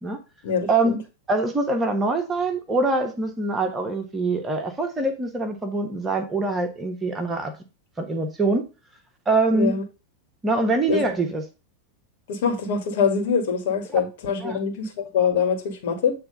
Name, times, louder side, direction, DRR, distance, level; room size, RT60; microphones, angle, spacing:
voice 1, 0.4-1.0 9.5-9.8 10.9-11.0 12.3-16.1, left 6 dB, 55° left, 2 dB, 2.4 m, -24 dB
voice 2, 1.3-7.5 8.0-8.6 9.2-9.8 10.4-11.4 13.9-14.0 14.4-14.6, right 2 dB, 15° right, 5 dB, 1.4 m, -24 dB
8.7 x 3.5 x 5.2 m, 0.30 s
figure-of-eight pair, 90°, 0 cm